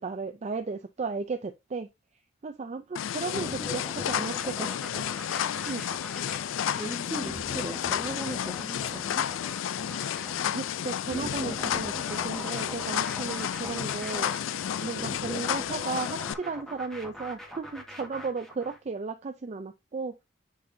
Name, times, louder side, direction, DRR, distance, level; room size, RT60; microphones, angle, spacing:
voice 1, 0.0-1.9 2.4-5.0 5.6-5.8 7.7-7.8 10.5-14.3 14.8-20.2, right 4 dB, 35° right, 0.4 m, -35 dB
sound 1, 3.0-16.3, left 9 dB, 90° left, 0.4 m, -31 dB
sound 2, 3.4-18.8, left 1 dB, 5° left, 1.5 m, -42 dB
voice 2, 6.8-9.5, right 1 dB, 15° right, 1.4 m, -38 dB
9.3 x 4.1 x 2.6 m
head